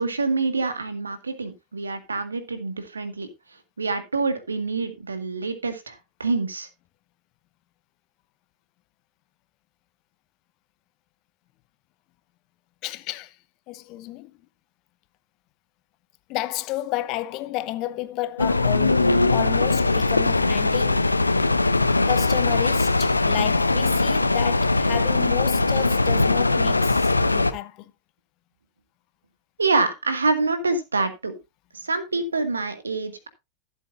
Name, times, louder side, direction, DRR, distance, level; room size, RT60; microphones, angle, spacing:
voice 1, 0.0-3.3 3.8-6.7 29.6-31.3 31.7-33.3, right 3 dB, 75° right, 1.8 m, -26 dB
voice 2, 12.8-13.4 13.7-14.3 16.3-21.1 22.0-27.9, left 15 dB, 40° left, 0.9 m, -31 dB
sound 1, 18.4-27.5, left 2 dB, 80° left, 0.7 m, -21 dB
15.0 x 8.2 x 2.5 m
figure-of-eight pair, 90°, 0 cm